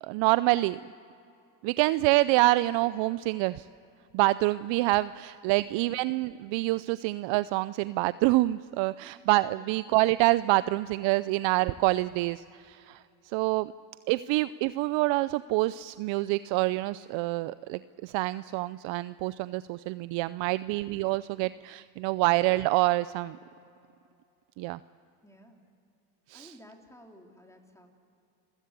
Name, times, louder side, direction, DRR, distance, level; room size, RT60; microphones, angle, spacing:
voice 1, 0.0-0.8 1.6-3.7 4.1-13.7 14.1-23.4 24.6-24.8 26.3-26.5, right 19 dB, 65° right, 16 dB, 0.6 m, -26 dB
voice 2, 5.4-5.9 9.4-9.7 13.4-13.6 21.3-21.5 25.2-25.6 26.3-27.9, left 1 dB, 5° left, 2 dB, 3.4 m, -55 dB
27.5 x 15.5 x 8.2 m, 2.6 s
supercardioid pair, 90°, 49 cm